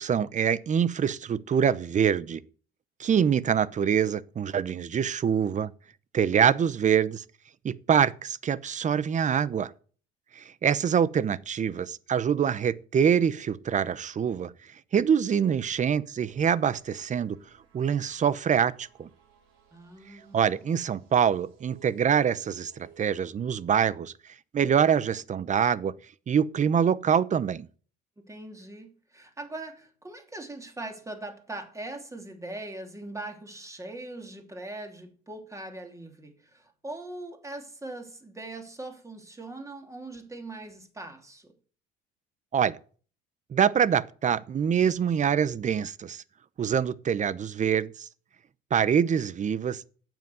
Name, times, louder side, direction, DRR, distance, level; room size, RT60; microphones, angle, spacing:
voice 1, 0.0-2.4 3.0-5.7 6.1-7.2 7.6-9.7 10.4-14.5 14.9-17.4 17.7-19.1 20.3-24.1 24.5-25.9 26.3-27.7 42.5-42.8 43.5-46.2 46.6-48.1 48.7-49.9, right 8 dB, 35° right, 0.8 m, -25 dB
Ballistic Transport Extended Mix, 16.2-23.1, right 7 dB, 75° right, 5.1 m, -59 dB
voice 2, 19.7-20.7 28.3-41.5, right 2 dB, 15° right, 3.0 m, -41 dB
9.0 x 7.9 x 7.9 m
supercardioid pair, 95°, 21 cm